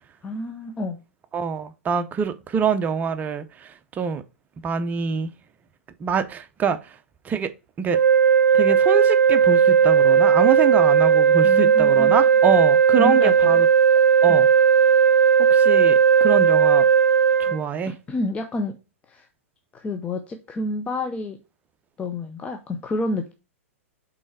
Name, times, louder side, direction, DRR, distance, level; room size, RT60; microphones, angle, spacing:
voice 1, 0.2-1.0 11.4-12.2 13.0-13.4 14.3-14.4 17.5-17.6 17.9-18.8 19.1-19.3 19.7-21.4 22.0-23.3, left 2 dB, 15° left, 0.7 m, -29 dB
voice 2, 1.3-4.2 4.6-5.3 6.0-7.0 7.2-7.5 7.8-8.0 8.5-13.7 14.2-14.5 15.5-16.9 17.4-17.9, right 6 dB, 20° right, 0.7 m, -25 dB
sound 1, 7.9-17.6, right 7 dB, 70° right, 0.5 m, -16 dB
5.4 x 4.2 x 4.8 m
figure-of-eight pair, 105°, 7 cm